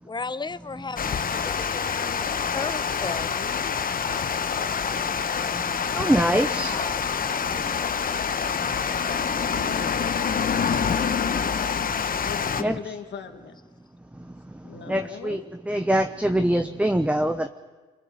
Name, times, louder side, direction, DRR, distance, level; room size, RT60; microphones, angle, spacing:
voice 1, 0.0-3.3 6.4-7.1, left 4 dB, 20° left, 16 dB, 0.8 m, -36 dB
Water, 1.0-12.6, left 6 dB, 45° left, 1.0 m, -26 dB
voice 2, 3.0-3.8 9.6-10.4 12.2-13.6 14.6-15.4, left 7 dB, 60° left, 6 dB, 1.9 m, -39 dB
voice 3, 5.9-6.8 12.6-12.8 14.9-15.4 15.7-17.5, right 1 dB, 5° right, 8 dB, 0.9 m, -23 dB
25.0 x 21.5 x 7.1 m, 1.3 s
supercardioid pair, 60°, 21 cm